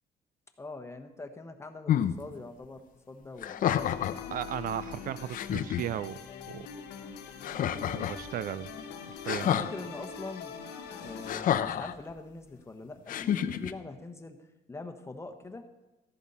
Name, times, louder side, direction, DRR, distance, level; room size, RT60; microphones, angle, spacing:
voice 1, 0.6-3.7 9.4-10.5 11.0-14.4 14.7-15.6, left 3 dB, 15° left, 6 dB, 1.2 m, -43 dB
sound 1, 1.9-2.2 3.4-4.2 4.9-5.0 5.3-5.8 7.4-8.2 9.3-9.7 11.3-11.9 13.1-13.7, left 10 dB, 55° left, 0.7 m, -29 dB
sound 2, 3.7-11.4, left 7 dB, 80° left, 1.3 m, -43 dB
voice 2, 4.3-6.2 6.5-6.7 7.7-8.7 9.0-9.6, right 11 dB, 55° right, 16 dB, 0.4 m, -36 dB
14.5 x 11.0 x 4.3 m, 1.0 s
cardioid pair, 110°, 17 cm